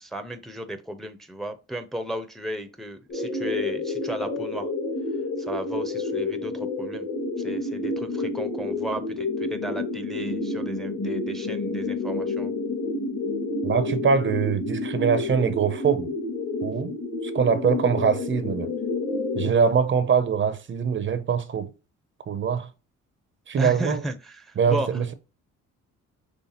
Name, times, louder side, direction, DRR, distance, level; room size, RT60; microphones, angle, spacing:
voice 1, 0.0-4.7 5.4-7.1 7.4-12.5 23.6-25.1, right 1 dB, ahead, 0.6 m, -34 dB
sound 1, 3.1-19.5, left 2 dB, 55° left, 2.0 m, -29 dB
voice 2, 13.6-16.1 16.6-16.9 17.2-18.7 19.3-21.7 22.3-22.7 23.5-24.0 24.6-25.1, right 6 dB, 40° right, 0.6 m, -23 dB
5.6 x 3.3 x 2.9 m
cardioid pair, 90°, 30 cm